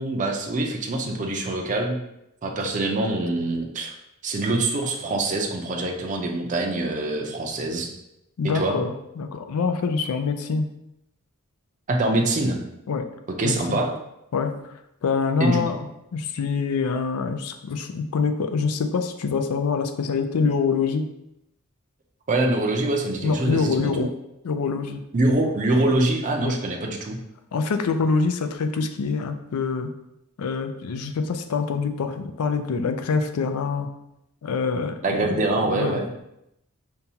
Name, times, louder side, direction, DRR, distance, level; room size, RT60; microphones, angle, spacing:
voice 1, 0.0-2.0 2.4-3.9 4.2-7.9 8.5-8.8 11.9-12.6 13.4-13.9 15.4-15.6 22.3-23.9 25.1-27.2 35.0-36.1, right 2 dB, 35° right, 0 dB, 0.5 m, -24 dB
voice 2, 8.4-10.7 12.9-13.1 13.4-13.8 14.3-14.5 15.0-15.8 16.1-21.1 23.2-24.1 24.4-25.0 25.8-25.9 26.4-26.6 27.5-29.9 30.4-33.9 34.4-35.3 35.6-36.2, left 5 dB, 85° left, 7 dB, 0.4 m, -25 dB
5.3 x 2.3 x 2.8 m, 0.84 s
head